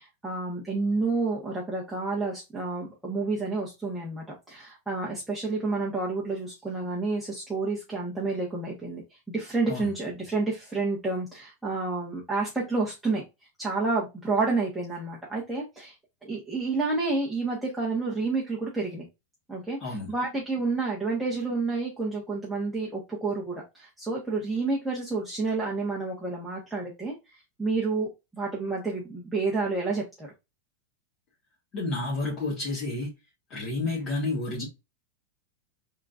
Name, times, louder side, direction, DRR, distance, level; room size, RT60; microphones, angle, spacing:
voice 1, 0.0-9.0 9.3-13.2 13.6-15.9 16.2-19.0 19.5-27.1 27.6-30.3, right 3 dB, 5° right, 1.2 m, -29 dB
voice 2, 19.8-20.1 31.7-33.1 33.5-34.7, left 2 dB, 30° left, 1.8 m, -30 dB
4.2 x 3.8 x 2.5 m
supercardioid pair, 160°, 0 cm